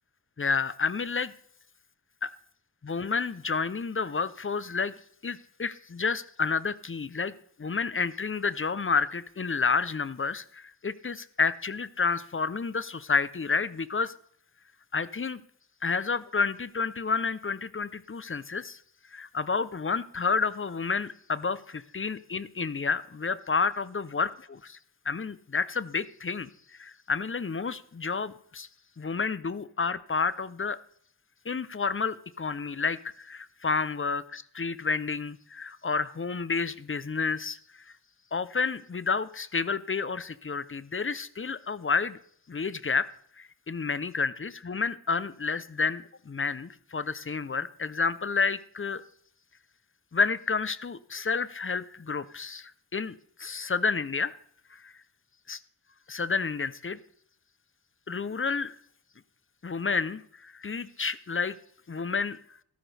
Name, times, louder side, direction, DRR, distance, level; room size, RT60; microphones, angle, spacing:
voice 1, 0.4-1.3 2.2-2.3 2.8-7.3 7.6-14.1 14.9-15.4 15.8-18.8 19.1-24.8 25.1-28.7 29.0-30.8 31.5-37.9 38.3-42.2 42.5-43.1 43.4-49.0 50.1-54.3 54.7-54.9 55.5-55.6 56.1-57.0 58.1-58.7 59.6-61.6 61.9-62.4, left 5 dB, 30° left, 16 dB, 0.7 m, -30 dB
14.0 x 13.0 x 3.4 m, 0.62 s
wide cardioid pair, 85°, 41 cm